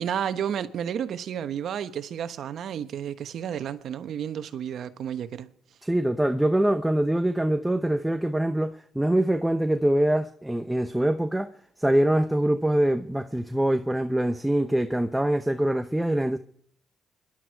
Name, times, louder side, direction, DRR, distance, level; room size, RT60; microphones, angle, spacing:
voice 1, 0.0-5.5, right 9 dB, 65° right, 1.2 m, -31 dB
voice 2, 5.8-11.5 11.8-16.4, right 1 dB, 5° right, 0.9 m, -24 dB
26.0 x 11.5 x 4.7 m
cardioid pair, 90°, 0 cm